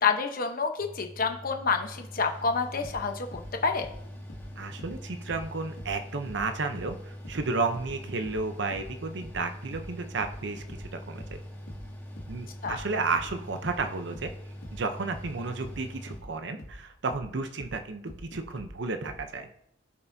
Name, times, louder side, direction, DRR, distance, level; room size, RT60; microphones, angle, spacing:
voice 1, 0.0-3.9 12.6-12.8, left 5 dB, 50° left, 5 dB, 1.0 m, -28 dB
Mechanical fan, 0.8-16.2, equal, 10° left, 2.0 m, -43 dB
kick jomox, 2.8-6.0 6.3-19.3, equal, 75° left, 2.2 m, -45 dB
voice 2, 4.6-11.4 12.3-14.3 14.7-19.5, right 3 dB, 65° right, 7 dB, 0.7 m, -32 dB
17.0 x 5.7 x 2.7 m, 0.76 s
head